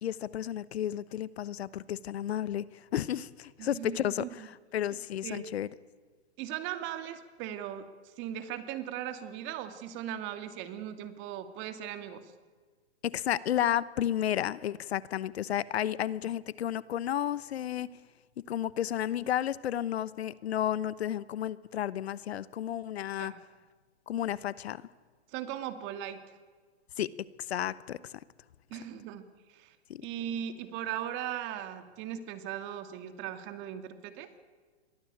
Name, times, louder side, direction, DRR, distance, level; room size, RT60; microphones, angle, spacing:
voice 1, 0.0-5.7 13.0-17.9 18.5-23.3 24.1-24.8 27.0-27.1 27.4-28.2 29.9-30.0, left 11 dB, 65° left, 18 dB, 1.0 m, -32 dB
voice 2, 3.6-4.5 4.9-5.5 6.4-12.3 23.2-23.4 25.3-26.3 28.7-29.8 30.0-34.3, right 10 dB, 35° right, 9 dB, 2.4 m, -39 dB
28.0 x 23.0 x 8.7 m, 1.5 s
hypercardioid pair, 125°, 34 cm